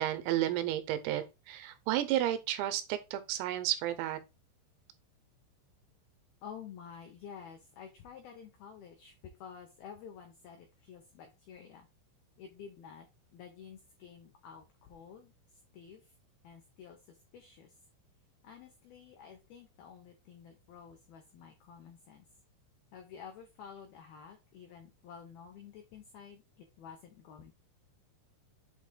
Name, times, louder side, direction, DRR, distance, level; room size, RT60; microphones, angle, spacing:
voice 1, 0.0-4.2, right 13 dB, 85° right, 3.6 m, -32 dB
voice 2, 6.4-9.1 9.4-11.9 12.4-13.1 13.3-15.3 15.7-16.0 16.4-17.7 18.4-22.2 22.9-27.6, left 7 dB, 85° left, 2.1 m, -51 dB
8.2 x 3.5 x 3.9 m
omnidirectional pair, 5.9 m